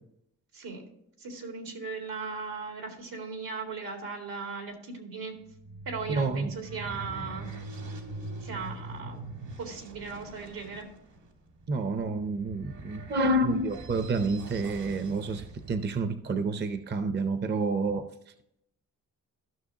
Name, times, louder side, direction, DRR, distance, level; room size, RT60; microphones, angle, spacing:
voice 1, 1.2-5.3 5.9-7.5 8.4-9.2 9.6-10.9, right 5 dB, 80° right, 2 dB, 2.3 m, -37 dB
sound 1, 5.4-15.9, right 2 dB, 60° right, 1.5 m, -43 dB
voice 2, 6.1-6.5 11.7-18.1, right 2 dB, 30° right, 9 dB, 0.6 m, -29 dB
14.0 x 6.3 x 2.8 m, 0.77 s
wide cardioid pair, 115°, 34 cm